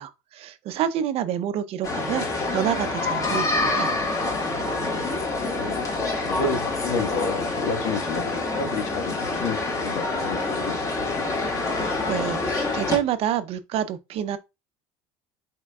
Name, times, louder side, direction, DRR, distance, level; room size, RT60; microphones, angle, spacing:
voice 1, 0.0-4.0 11.8-14.4, right 10 dB, 50° right, 0.5 m, -28 dB
sound 1, 1.8-13.0, left 3 dB, 25° left, 1.7 m, -26 dB
voice 2, 4.5-5.2 5.5-5.8 6.2-11.3, left 4 dB, 70° left, 1.4 m, -31 dB
4.7 x 4.4 x 2.3 m
cardioid pair, 130°, 13 cm